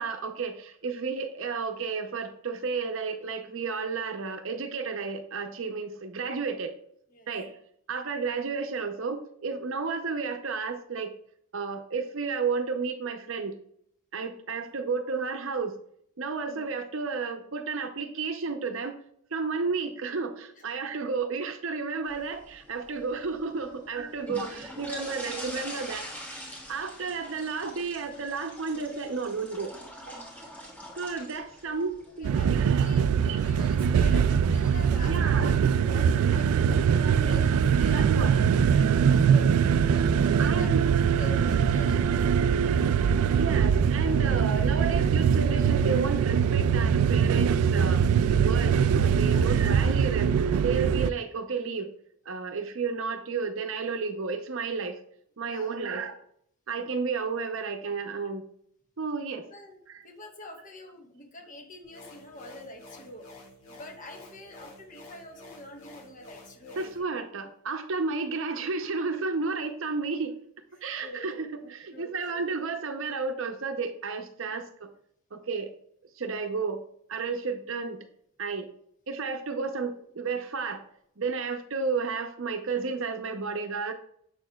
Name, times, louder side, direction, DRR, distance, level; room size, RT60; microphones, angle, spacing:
voice 1, 0.0-6.7 7.3-7.5 7.9-11.1 11.5-13.6 14.1-15.8 16.2-19.0 19.3-26.1 26.7-29.7 30.1-30.2 31.0-32.9 33.2-33.4 35.1-35.5 37.2-37.3 37.9-38.4 40.4-40.8 43.4-48.0 48.4-51.9 52.3-55.0 55.4-56.2 56.7-58.5 59.0-59.5 59.9-60.0 66.8-70.3 70.8-74.9 75.3-75.7 76.2-76.8 77.1-78.0 78.4-78.7 79.1-80.8 81.2-83.9, right 4 dB, 60° right, 7 dB, 0.7 m, -32 dB
sound 1, 22.1-34.4, left 1 dB, 10° left, 1.3 m, -44 dB
voice 2, 32.2-39.5 40.1-40.7 41.2-42.7 48.3-48.5 49.1-49.5 55.4-55.8 59.5-59.8 60.0-63.3 63.7-66.9 70.7-71.3 71.6-72.1 74.5-74.6, left 1 dB, 35° left, 3 dB, 1.1 m, -46 dB
sound 2, 32.2-51.1, right 7 dB, 80° right, 0.3 m, -22 dB
sound 3, 61.8-67.0, left 2 dB, 80° left, 2.0 m, -50 dB
7.3 x 6.4 x 2.3 m, 0.68 s
head